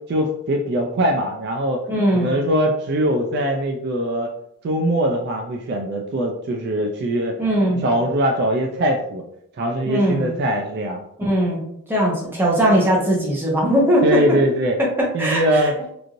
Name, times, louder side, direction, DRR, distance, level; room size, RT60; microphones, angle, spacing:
voice 1, 0.1-1.8 2.1-4.3 4.6-7.4 7.8-9.2 9.6-11.0 14.0-14.8 15.1-15.7, right 1 dB, 50° right, 2 dB, 0.3 m, -21 dB
voice 2, 1.9-2.3 7.4-7.9 9.9-10.3 11.2-11.6 11.9-14.4 14.8-15.6, equal, 10° right, -4 dB, 0.7 m, -19 dB
3.0 x 2.5 x 2.5 m, 0.74 s
head